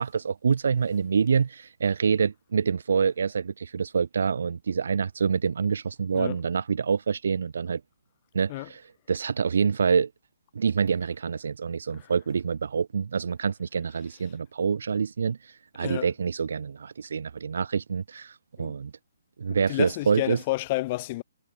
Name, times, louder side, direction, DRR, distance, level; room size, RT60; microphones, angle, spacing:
voice 1, 0.0-7.8 8.3-8.8 9.1-10.1 10.5-15.4 15.7-18.3 18.6-18.9 19.4-20.4, right 6 dB, 65° right, 1.3 m, -26 dB
voice 2, 19.5-21.2, left 19 dB, 35° left, 5.0 m, -30 dB
figure-of-eight pair, 140°, 0 cm